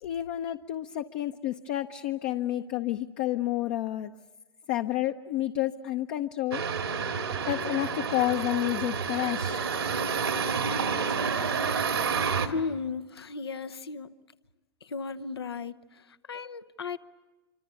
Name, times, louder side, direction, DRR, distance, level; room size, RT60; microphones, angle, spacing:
voice 1, 0.0-4.1 4.7-6.7 7.5-9.6, left 14 dB, 50° left, 7 dB, 0.8 m, -30 dB
sound 1, 6.5-12.5, right 6 dB, 85° right, 2.2 m, -29 dB
voice 2, 12.4-14.1 14.8-17.0, left 4 dB, 85° left, 13 dB, 0.9 m, -35 dB
26.0 x 25.5 x 8.3 m, 1.2 s
hypercardioid pair, 100°, 13 cm